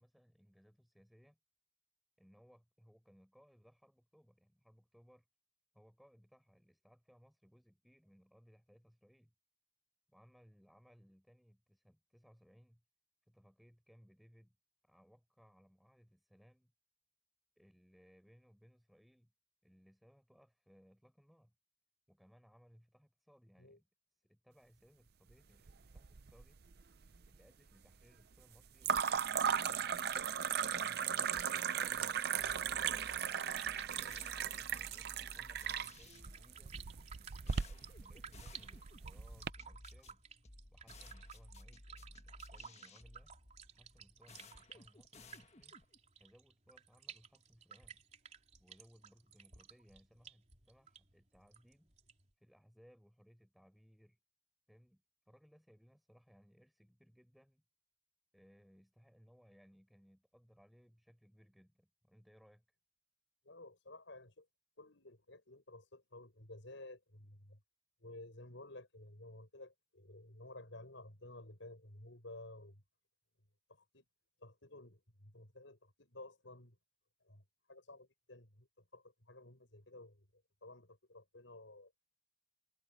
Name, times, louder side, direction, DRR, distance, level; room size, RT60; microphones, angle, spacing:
voice 1, 0.0-1.4 2.2-5.3 5.7-9.3 10.1-12.8 13.3-14.6 14.8-16.7 17.6-19.3 19.6-21.5 22.1-26.6 27.3-30.1 30.7-33.1 33.8-36.8 37.2-40.2 40.7-43.3 43.7-45.8 46.2-48.0 48.6-51.9 52.4-54.2 54.7-57.6 58.3-62.8, equal, ahead, 5.9 m, -66 dB
sound 1, 25.7-26.4 26.7-27.4 28.8-39.5, right 7 dB, 55° right, 0.6 m, -37 dB
sound 2, 32.4-46.0, left 2 dB, 35° left, 1.5 m, -57 dB
sound 3, 33.3-52.3, right 7 dB, 40° right, 3.8 m, -56 dB
voice 2, 63.4-64.5 64.8-67.6 68.0-72.8 73.7-74.0 74.4-76.8 77.2-81.9, left 2 dB, 75° left, 5.9 m, -54 dB
head